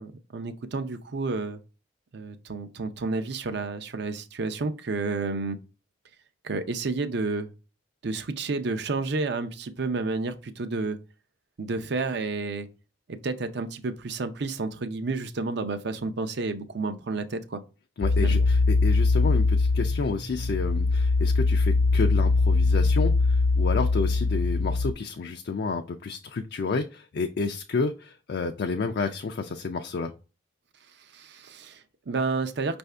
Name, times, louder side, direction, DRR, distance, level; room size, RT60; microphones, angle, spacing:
voice 1, 0.0-1.6 2.1-5.6 6.4-7.5 8.0-11.0 11.6-12.7 13.1-17.6 18.2-18.4 31.1-32.8, right 3 dB, 60° right, 0.6 m, -30 dB
sound 1, 18.0-24.9, left 3 dB, 85° left, 0.8 m, -22 dB
voice 2, 18.0-30.1, left 4 dB, 60° left, 0.4 m, -30 dB
5.6 x 2.6 x 3.3 m
head